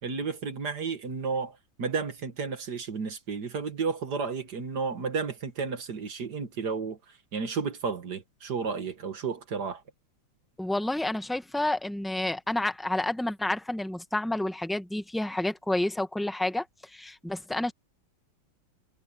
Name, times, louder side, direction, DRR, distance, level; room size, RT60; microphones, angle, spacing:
voice 1, 0.0-7.0 7.3-9.8, right 5 dB, 65° right, 2.2 m, -32 dB
voice 2, 10.6-16.7 16.9-17.7, left 1 dB, ahead, 0.6 m, -29 dB
omnidirectional pair, 2.0 m